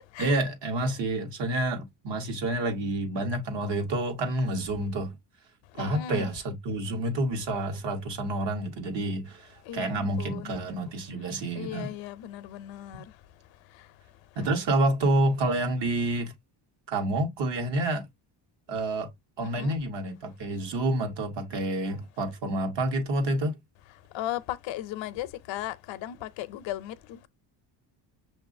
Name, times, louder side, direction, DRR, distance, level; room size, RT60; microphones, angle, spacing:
voice 1, 0.2-5.1 5.7-11.9 14.4-16.3 16.9-18.1 18.7-19.1 19.4-23.6, right 1 dB, 65° right, 1.3 m, -28 dB
voice 2, 5.8-6.3 9.7-10.6 11.6-13.0 19.4-19.7 24.1-27.3, left 12 dB, 80° left, 0.6 m, -36 dB
6.3 x 2.6 x 2.6 m
cardioid pair, 120°, 45 cm